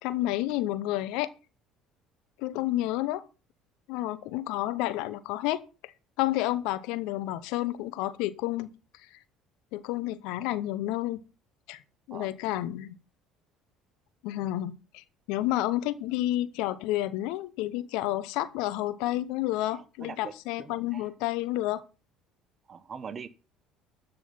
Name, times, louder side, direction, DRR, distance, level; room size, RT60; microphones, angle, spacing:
voice 1, 0.0-1.3 2.4-3.2 3.9-5.9 6.2-8.8 9.1-9.2 9.7-11.2 11.7-11.8 12.1-13.0 14.2-21.8, left 15 dB, 65° left, 0.8 m, -30 dB
voice 2, 19.7-21.1 22.7-23.3, right 6 dB, 40° right, 1.2 m, -43 dB
13.0 x 6.7 x 5.7 m
hypercardioid pair, 60°, 0 cm